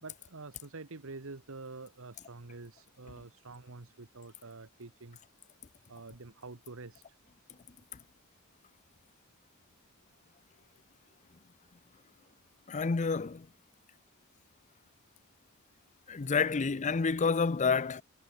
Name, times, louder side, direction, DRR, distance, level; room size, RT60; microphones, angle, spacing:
voice 1, 0.0-5.2 5.9-7.0, right 3 dB, 65° right, 1.3 m, -47 dB
voice 2, 12.7-13.5 16.1-18.0, left 5 dB, 35° left, 0.5 m, -29 dB
head